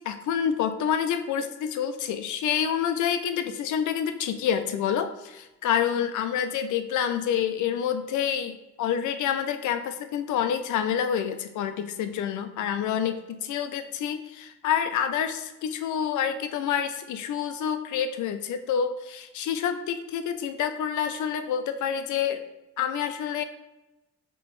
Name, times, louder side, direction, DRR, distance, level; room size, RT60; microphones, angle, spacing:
voice 1, 0.0-22.4 22.8-23.4, left 8 dB, 75° left, 9 dB, 0.5 m, -28 dB
5.0 x 3.0 x 3.1 m, 0.99 s
cardioid pair, 90°, 30 cm